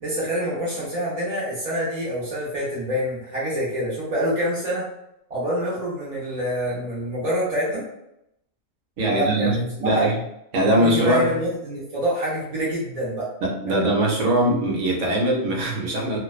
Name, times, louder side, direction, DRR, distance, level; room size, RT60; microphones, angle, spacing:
voice 1, 0.0-4.9 5.3-7.8 9.1-10.1 10.6-13.3 13.7-13.9, equal, 45° right, -8 dB, 0.5 m, -26 dB
voice 2, 9.0-10.2 10.5-11.4 13.4-16.2, right 1 dB, 70° right, -1 dB, 1.0 m, -21 dB
2.5 x 2.1 x 2.3 m, 0.81 s
omnidirectional pair, 1.4 m